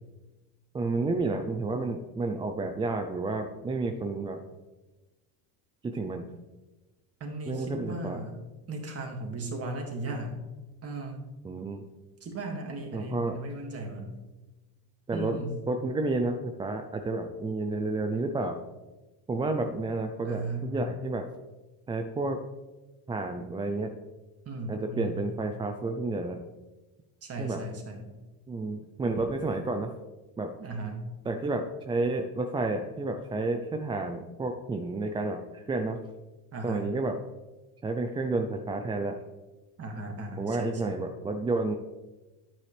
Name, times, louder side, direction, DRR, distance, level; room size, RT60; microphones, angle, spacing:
voice 1, 0.7-4.4 5.8-6.3 7.5-8.2 11.4-11.8 12.9-13.4 15.1-15.4 15.7-18.6 19.3-21.3 21.9-22.4 23.1-23.9 24.7-26.4 27.4-27.6 28.5-29.9 30.4-30.5 31.3-36.0 36.6-37.2 37.8-39.2 40.4-41.8, right 2 dB, 10° right, 5 dB, 0.4 m, -30 dB
voice 2, 7.2-8.3 8.7-10.3 10.8-11.2 12.2-14.1 15.1-15.6 20.2-20.7 24.4-25.2 27.2-28.1 30.6-31.0 36.5-36.9 39.8-41.1, right 2 dB, 30° right, 2 dB, 2.2 m, -36 dB
9.8 x 8.4 x 3.3 m, 1.1 s
supercardioid pair, 115°, 45 cm